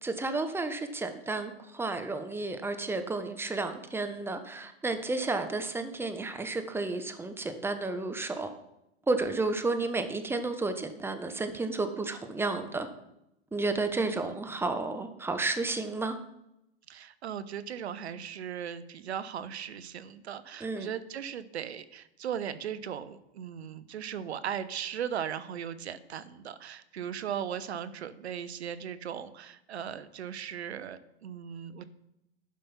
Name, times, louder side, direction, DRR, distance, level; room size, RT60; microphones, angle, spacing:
voice 1, 0.0-8.5 9.1-12.9 13.5-16.2 20.6-20.9, right 3 dB, 5° right, 7 dB, 1.0 m, -32 dB
voice 2, 14.0-14.3 16.9-31.8, right 8 dB, 75° right, 13 dB, 0.9 m, -38 dB
11.5 x 5.2 x 5.8 m, 0.85 s
hypercardioid pair, 105°, 33 cm